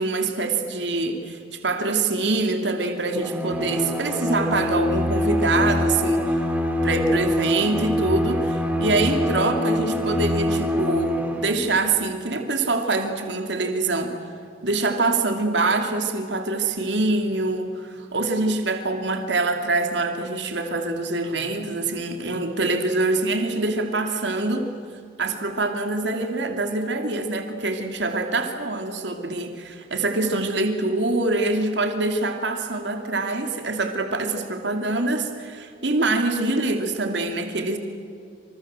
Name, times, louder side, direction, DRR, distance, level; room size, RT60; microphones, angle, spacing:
voice 1, 0.0-6.4 6.8-14.1 14.6-24.7 25.2-37.8, right 2 dB, 75° right, 5 dB, 2.9 m, -25 dB
Bowed string instrument, 3.1-11.7, left 1 dB, 10° right, 2.8 m, -24 dB
28.0 x 27.5 x 7.6 m, 2.3 s
head